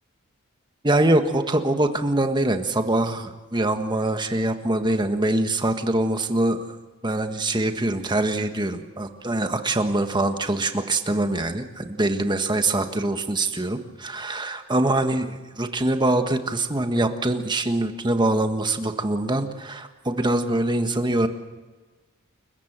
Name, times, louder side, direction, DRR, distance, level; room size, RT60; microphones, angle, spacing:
voice 1, 0.8-6.6 7.0-21.3, right 2 dB, 20° right, 7 dB, 1.6 m, -24 dB
29.5 x 15.0 x 7.5 m, 1.3 s
head